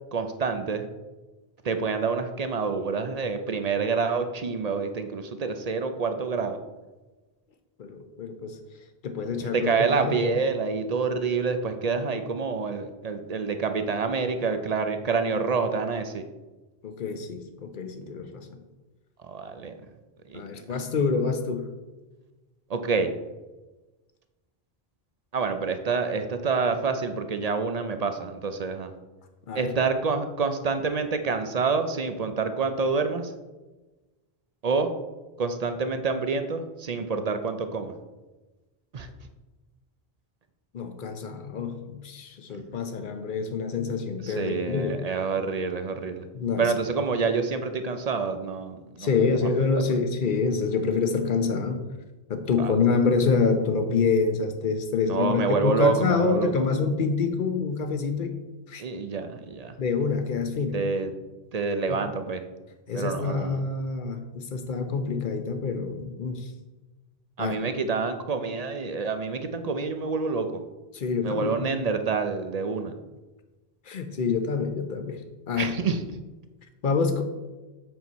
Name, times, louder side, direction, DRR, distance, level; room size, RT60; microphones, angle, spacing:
voice 1, 0.1-0.9 1.6-6.6 9.4-16.2 19.2-19.7 20.3-20.4 22.7-23.1 25.3-28.9 29.5-33.3 34.6-34.9 35.4-37.9 38.9-39.1 42.5-42.6 44.2-46.2 46.6-49.1 52.6-52.7 55.1-56.5 58.8-59.8 60.7-61.1 61.5-62.4 62.9-63.6 67.4-70.6 71.2-72.9 75.6-76.0, right 4 dB, 50° right, 8 dB, 0.6 m, -27 dB
voice 2, 7.8-8.6 9.0-10.4 16.8-18.6 20.3-21.7 29.5-29.7 40.7-45.0 46.3-46.7 49.0-51.8 52.3-58.3 58.7-58.8 59.8-60.8 61.9-62.0 62.9-66.5 67.4-67.6 70.9-71.7 73.9-75.7 76.8-77.2, left 5 dB, 55° left, 7 dB, 0.9 m, -27 dB
7.8 x 6.0 x 4.1 m, 1.2 s
omnidirectional pair, 1.0 m